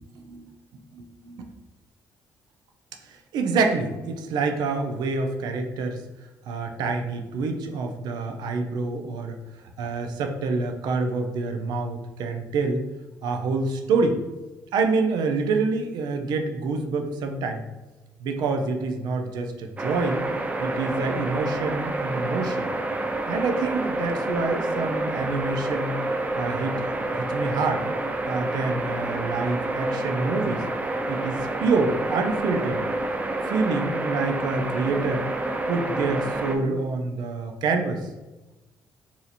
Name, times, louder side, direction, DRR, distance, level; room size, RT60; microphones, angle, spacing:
voice 1, 0.1-1.5 3.1-6.0 6.5-9.4 9.8-12.8 13.2-14.2 14.7-17.7 18.2-20.2 20.6-22.7 23.3-25.9 26.4-27.8 28.3-30.6 31.1-32.8 33.4-35.3 35.7-38.1, right 4 dB, 75° right, 5 dB, 0.5 m, -27 dB
sound 1, 19.8-36.6, right 2 dB, 20° right, 0.5 m, -28 dB
2.8 x 2.4 x 4.1 m, 1.1 s
supercardioid pair, 70°, 7 cm